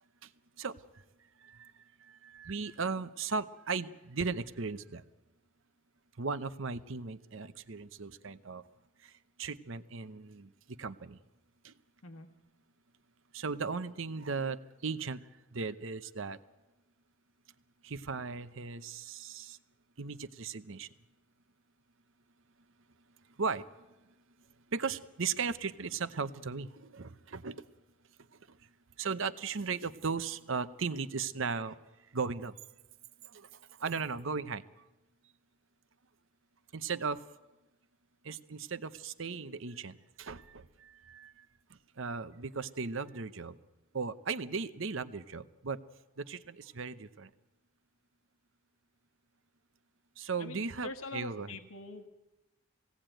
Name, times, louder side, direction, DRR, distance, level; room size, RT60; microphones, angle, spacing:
voice 1, 2.3-5.0 6.2-8.6 9.4-10.5 10.8-11.2 13.3-14.6 14.8-15.2 15.5-16.4 17.9-19.6 20.0-20.9 23.4-23.6 24.7-26.7 26.9-27.6 29.0-31.7 32.1-32.5 33.8-34.6 36.7-37.2 38.3-40.4 41.1-41.3 42.0-43.5 43.9-45.8 46.3-47.3 50.2-51.5, right 5 dB, 65° right, 13 dB, 0.8 m, -36 dB
voice 2, 50.4-52.1, left 2 dB, 90° left, 6 dB, 1.4 m, -44 dB
20.5 x 17.0 x 9.0 m, 1.0 s
head